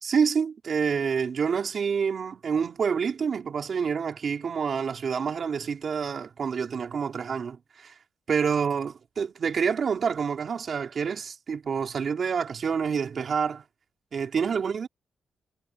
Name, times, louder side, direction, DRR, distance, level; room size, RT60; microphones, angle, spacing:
voice 1, 0.0-7.9 8.3-13.6 14.1-14.9, right 6 dB, 50° right, 4.3 m, -27 dB
wide cardioid pair, 145°, 0 cm